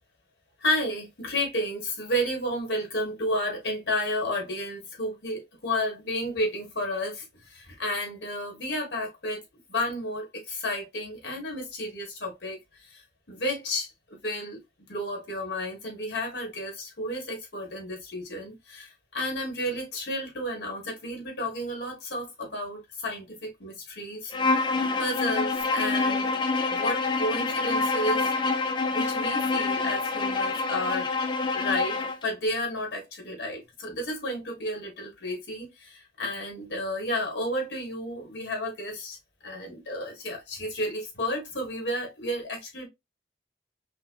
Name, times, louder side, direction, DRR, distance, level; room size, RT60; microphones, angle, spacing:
voice 1, 0.6-9.4 9.7-12.6 12.9-13.0 13.3-14.6 14.9-24.3 25.0-26.3 26.7-28.3 28.9-31.1 31.5-39.2 39.4-42.9, left 1 dB, 80° left, 1.6 m, -32 dB
Bowed string instrument, 24.3-32.2, left 3 dB, 25° left, 0.3 m, -26 dB
5.4 x 2.2 x 2.3 m
head